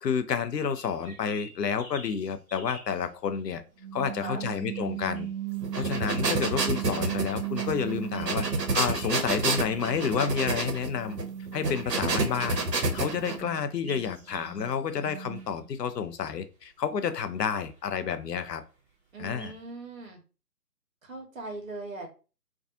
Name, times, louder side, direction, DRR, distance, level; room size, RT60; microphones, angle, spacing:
voice 1, 0.0-3.6 3.9-5.3 5.8-8.5 8.7-11.2 11.5-12.6 12.9-18.6 19.2-19.5, left 7 dB, 80° left, 10 dB, 0.5 m, -30 dB
sound 1, 0.7-19.7, equal, 10° right, 0.8 m, -51 dB
sound 2, 3.8-9.1 9.4-15.6, right 11 dB, 35° right, 0.7 m, -37 dB
voice 2, 4.0-4.4 19.1-20.2 21.0-22.1, right 2 dB, 55° right, 2 dB, 1.0 m, -40 dB
sound 3, 5.6-13.4, right 3 dB, 80° right, 0.7 m, -29 dB
2.5 x 2.3 x 2.6 m, 0.34 s
figure-of-eight pair, 145°, 49 cm